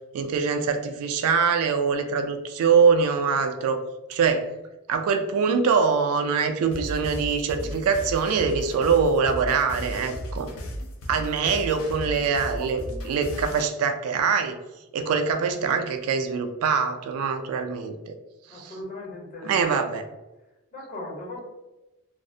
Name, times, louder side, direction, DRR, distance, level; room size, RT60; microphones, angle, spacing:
voice 1, 0.1-3.8 4.1-4.5 4.9-10.5 11.1-14.6 14.9-18.1 18.5-18.7 19.4-20.0, right 5 dB, 80° right, 7 dB, 0.3 m, -23 dB
sound 1, 6.7-13.7, equal, 70° left, 0.4 m, -35 dB
voice 2, 11.3-11.7 18.5-19.9 20.7-21.4, left 1 dB, 35° left, -4 dB, 0.9 m, -39 dB
2.3 x 2.0 x 2.6 m, 1.0 s
head